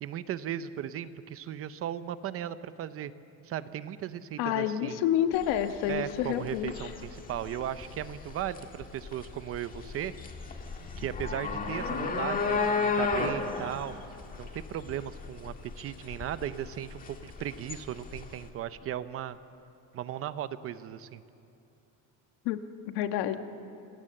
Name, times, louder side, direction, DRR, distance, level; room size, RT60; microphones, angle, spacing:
voice 1, 0.0-3.1 3.4-5.0 5.9-10.1 11.0-14.0 14.4-19.4 19.9-21.2, right 11 dB, 35° right, 13 dB, 0.7 m, -36 dB
voice 2, 4.4-6.9 22.4-22.6 22.9-23.4, left 11 dB, 80° left, 8 dB, 1.4 m, -29 dB
sound 1, 5.3-18.5, left 4 dB, 20° left, 1.8 m, -34 dB
27.0 x 20.0 x 7.6 m, 2.8 s
cardioid pair, 170°, 38 cm